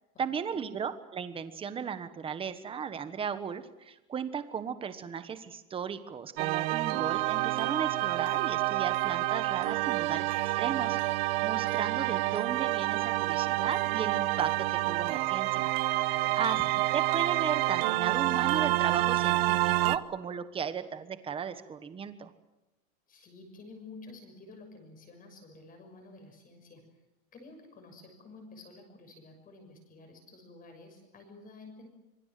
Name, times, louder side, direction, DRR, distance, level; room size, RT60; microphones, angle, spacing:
voice 1, 0.2-11.0 11.4-15.7 16.3-16.6 16.9-22.3, right 7 dB, 15° right, 11 dB, 1.2 m, -36 dB
sound 1, 6.4-20.0, right 18 dB, 45° right, 0.9 m, -28 dB
voice 2, 16.1-16.7 23.1-26.8 27.3-31.9, left 3 dB, 20° left, 5 dB, 6.5 m, -51 dB
26.0 x 24.5 x 7.7 m, 1.0 s
supercardioid pair, 170°, 43 cm